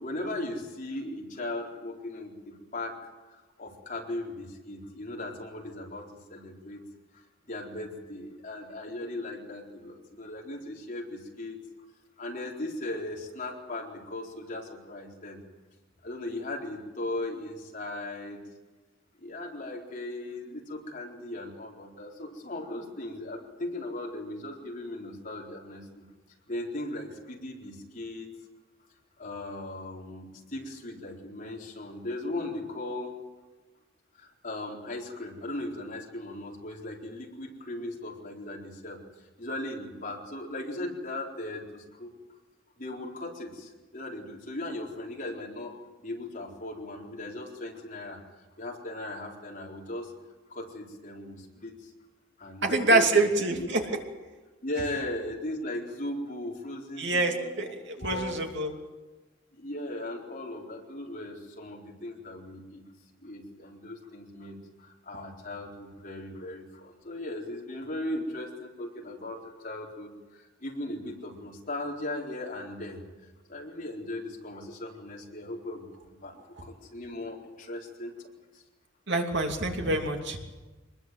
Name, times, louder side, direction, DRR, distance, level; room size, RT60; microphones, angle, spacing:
voice 1, 0.0-3.0 3.3-6.8 7.1-11.6 12.2-15.4 16.0-18.5 19.2-26.0 26.5-28.3 29.2-33.1 34.2-39.0 39.4-42.1 42.8-48.2 48.6-50.1 50.5-51.9 52.4-53.7 54.6-58.4 59.5-62.8 63.2-73.0 73.5-76.3 76.6-78.6, left 1 dB, 40° left, -1 dB, 4.3 m, -38 dB
voice 2, 52.6-53.8 57.0-58.7 79.1-80.4, right 2 dB, 60° right, 3 dB, 2.9 m, -26 dB
25.0 x 20.5 x 7.8 m, 1.2 s
head